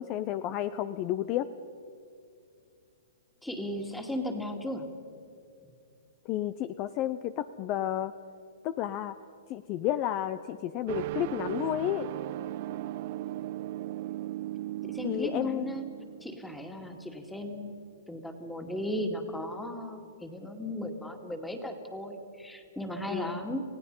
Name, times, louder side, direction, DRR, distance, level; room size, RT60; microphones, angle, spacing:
voice 1, 0.0-1.5 6.2-8.1 8.6-9.2 9.5-12.1 15.0-15.7 23.1-23.4, left 12 dB, 35° left, 13 dB, 0.6 m, -31 dB
voice 2, 3.4-4.9 14.8-15.9 16.2-23.6, equal, 5° left, 5 dB, 2.2 m, -36 dB
sound 1, 10.9-17.3, right 14 dB, 50° right, 0.5 m, -37 dB
29.0 x 16.5 x 5.5 m, 2.4 s
hypercardioid pair, 135°, 0 cm